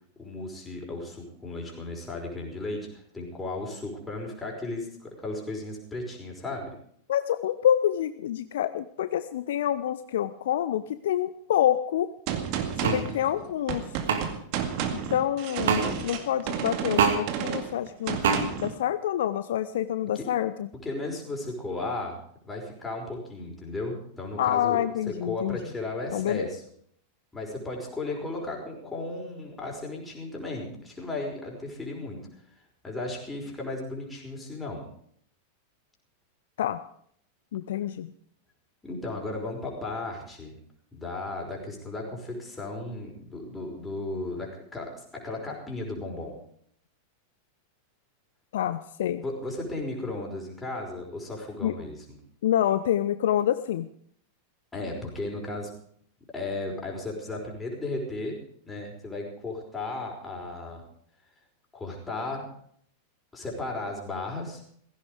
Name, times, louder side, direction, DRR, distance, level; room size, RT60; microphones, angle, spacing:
voice 1, 0.2-6.7 20.1-20.3 20.8-22.2 22.4-24.8 25.1-26.6 27.3-32.2 32.8-34.9 38.8-40.6 40.9-46.4 49.2-52.2 54.7-55.7 56.3-58.4 58.7-60.8 61.7-62.5 63.3-64.6, left 2 dB, 10° left, 0 dB, 5.2 m, -35 dB
voice 2, 7.1-12.1 12.8-13.8 14.9-18.2 18.6-20.7 24.4-25.6 26.1-26.5 36.6-36.8 37.5-38.1 48.5-49.2 51.6-51.8 52.4-53.9, left 11 dB, 60° left, 13 dB, 0.6 m, -27 dB
Gunshot gunfire, 12.3-18.8, right 8 dB, 45° right, 2.1 m, -32 dB
sound 1, 12.8-13.0 14.1-14.2 15.7-15.8 17.0-17.2 18.2-18.4, right 6 dB, 60° right, 2.4 m, -22 dB
16.5 x 16.0 x 5.0 m, 0.64 s
figure-of-eight pair, 90°, 0 cm